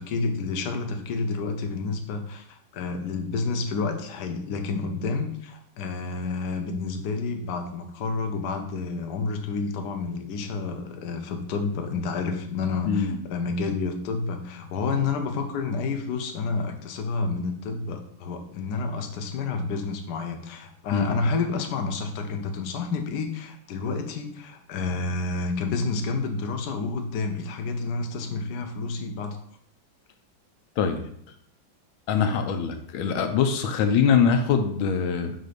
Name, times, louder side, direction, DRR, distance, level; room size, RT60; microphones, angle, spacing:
voice 1, 0.0-29.4, left 4 dB, 60° left, 5 dB, 1.2 m, -29 dB
voice 2, 12.9-13.2 20.9-21.2 30.8-31.0 32.1-35.3, left 6 dB, 85° left, 6 dB, 1.5 m, -23 dB
7.8 x 2.7 x 5.1 m, 0.65 s
omnidirectional pair, 2.2 m